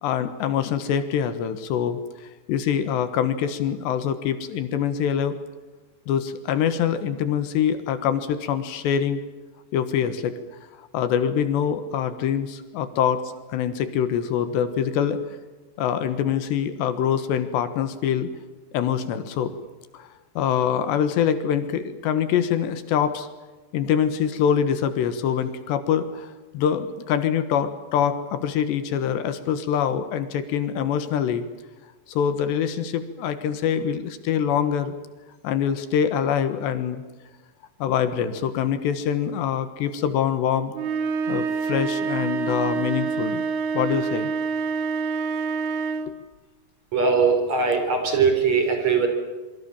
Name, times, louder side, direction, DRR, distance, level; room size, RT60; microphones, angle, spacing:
voice 1, 0.0-2.0 2.5-5.4 6.1-9.2 9.7-10.4 10.9-15.2 15.8-18.3 18.7-19.5 19.9-20.1 20.4-23.3 23.7-31.5 32.1-34.9 35.4-37.0 37.8-40.7 41.3-43.4 43.7-44.3 46.1-46.2, left 8 dB, 75° left, 11 dB, 3.5 m, -24 dB
sound 1, 40.7-46.2, right 5 dB, 80° right, 4.1 m, -27 dB
voice 2, 46.9-49.1, right 5 dB, 40° right, 5 dB, 4.8 m, -20 dB
26.0 x 24.5 x 7.2 m, 1.2 s
omnidirectional pair, 5.3 m